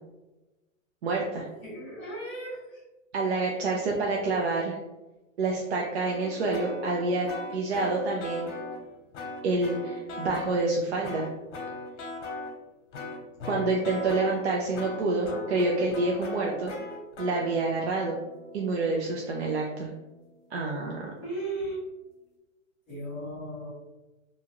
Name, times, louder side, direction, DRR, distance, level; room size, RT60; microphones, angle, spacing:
voice 1, 1.0-1.5 3.1-4.8 5.4-8.5 9.4-11.3 13.4-16.7 17.2-18.2 18.5-19.9 20.5-21.1, right 3 dB, 55° right, -2 dB, 0.5 m, -28 dB
voice 2, 1.6-2.8 21.2-21.8 22.9-23.7, right 1 dB, 15° left, -9 dB, 0.9 m, -36 dB
sound 1, 6.1-8.9 9.1-10.6 11.0-12.5 12.9-19.9, left 2 dB, 65° left, 0.9 m, -40 dB
2.7 x 2.3 x 2.9 m, 1.1 s
hypercardioid pair, 170°, 40 cm